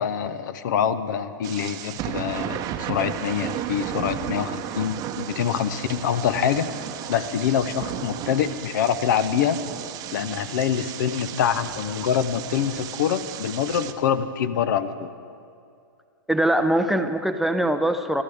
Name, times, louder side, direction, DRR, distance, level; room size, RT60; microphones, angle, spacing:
voice 1, 0.0-6.7 7.1-9.6 10.1-15.1, left 8 dB, 60° left, 13 dB, 0.8 m, -25 dB
sound 1, 1.4-13.9, right 11 dB, 30° right, 0.8 m, -34 dB
voice 2, 16.3-18.2, right 1 dB, ahead, 9 dB, 0.6 m, -22 dB
26.5 x 12.0 x 3.6 m, 2.4 s
hypercardioid pair, 110°, 12 cm